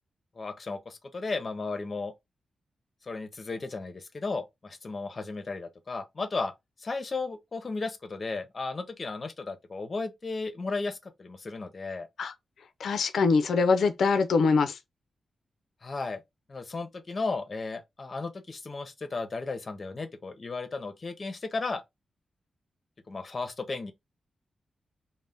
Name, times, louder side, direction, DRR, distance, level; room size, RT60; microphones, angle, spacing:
voice 1, 0.3-2.1 3.0-6.5 6.8-12.1 15.8-16.2 16.5-21.8 23.1-23.9, left 3 dB, 40° left, 0.6 m, -34 dB
voice 2, 12.8-14.8, left 4 dB, 80° left, 0.4 m, -23 dB
2.6 x 2.1 x 3.3 m
cardioid pair, 85°, 0 cm